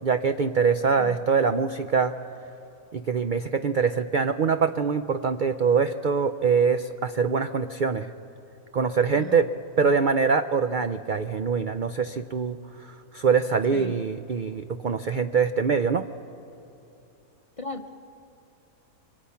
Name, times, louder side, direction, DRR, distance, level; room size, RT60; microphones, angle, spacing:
voice 1, 0.0-2.1 2.9-8.1 8.7-9.5 9.8-12.6 12.8-16.1, right 5 dB, 60° right, 9 dB, 0.5 m, -24 dB
voice 2, 9.1-9.5 9.8-10.0 13.7-14.0 17.6-17.9, left 2 dB, 30° left, 5 dB, 0.6 m, -37 dB
28.5 x 24.0 x 5.8 m, 2.7 s
omnidirectional pair, 1.6 m